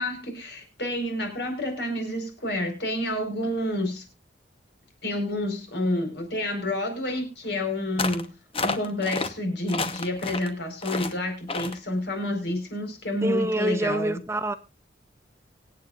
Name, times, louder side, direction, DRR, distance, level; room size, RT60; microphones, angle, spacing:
voice 1, 0.0-4.0 5.0-8.3 8.6-14.2, left 1 dB, 65° left, 4.7 m, -29 dB
sound 1, 8.0-8.3 8.5-9.3 9.7-10.5 10.8-11.1 11.5-11.8, left 3 dB, 30° left, 1.0 m, -30 dB
voice 2, 13.2-14.5, right 1 dB, 15° right, 0.6 m, -26 dB
25.0 x 8.8 x 2.5 m
head